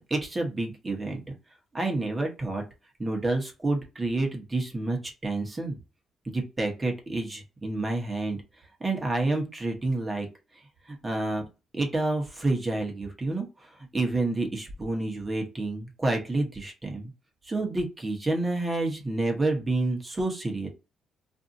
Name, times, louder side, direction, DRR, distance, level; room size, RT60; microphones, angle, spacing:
voice 1, 0.1-1.2 1.7-2.6 3.0-5.8 6.2-8.4 8.8-10.3 10.9-11.4 11.7-17.1 17.4-20.7, right 2 dB, 20° right, 1 dB, 1.0 m, -29 dB
2.6 x 2.6 x 2.6 m, 0.28 s
cardioid pair, 90°, 0 cm